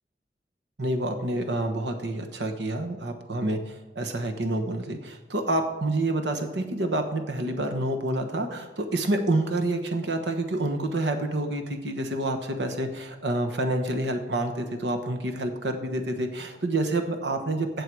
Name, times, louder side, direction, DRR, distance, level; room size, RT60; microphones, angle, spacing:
voice 1, 0.8-17.8, right 1 dB, 85° right, 6 dB, 1.2 m, -28 dB
16.0 x 6.7 x 4.8 m, 1.1 s
head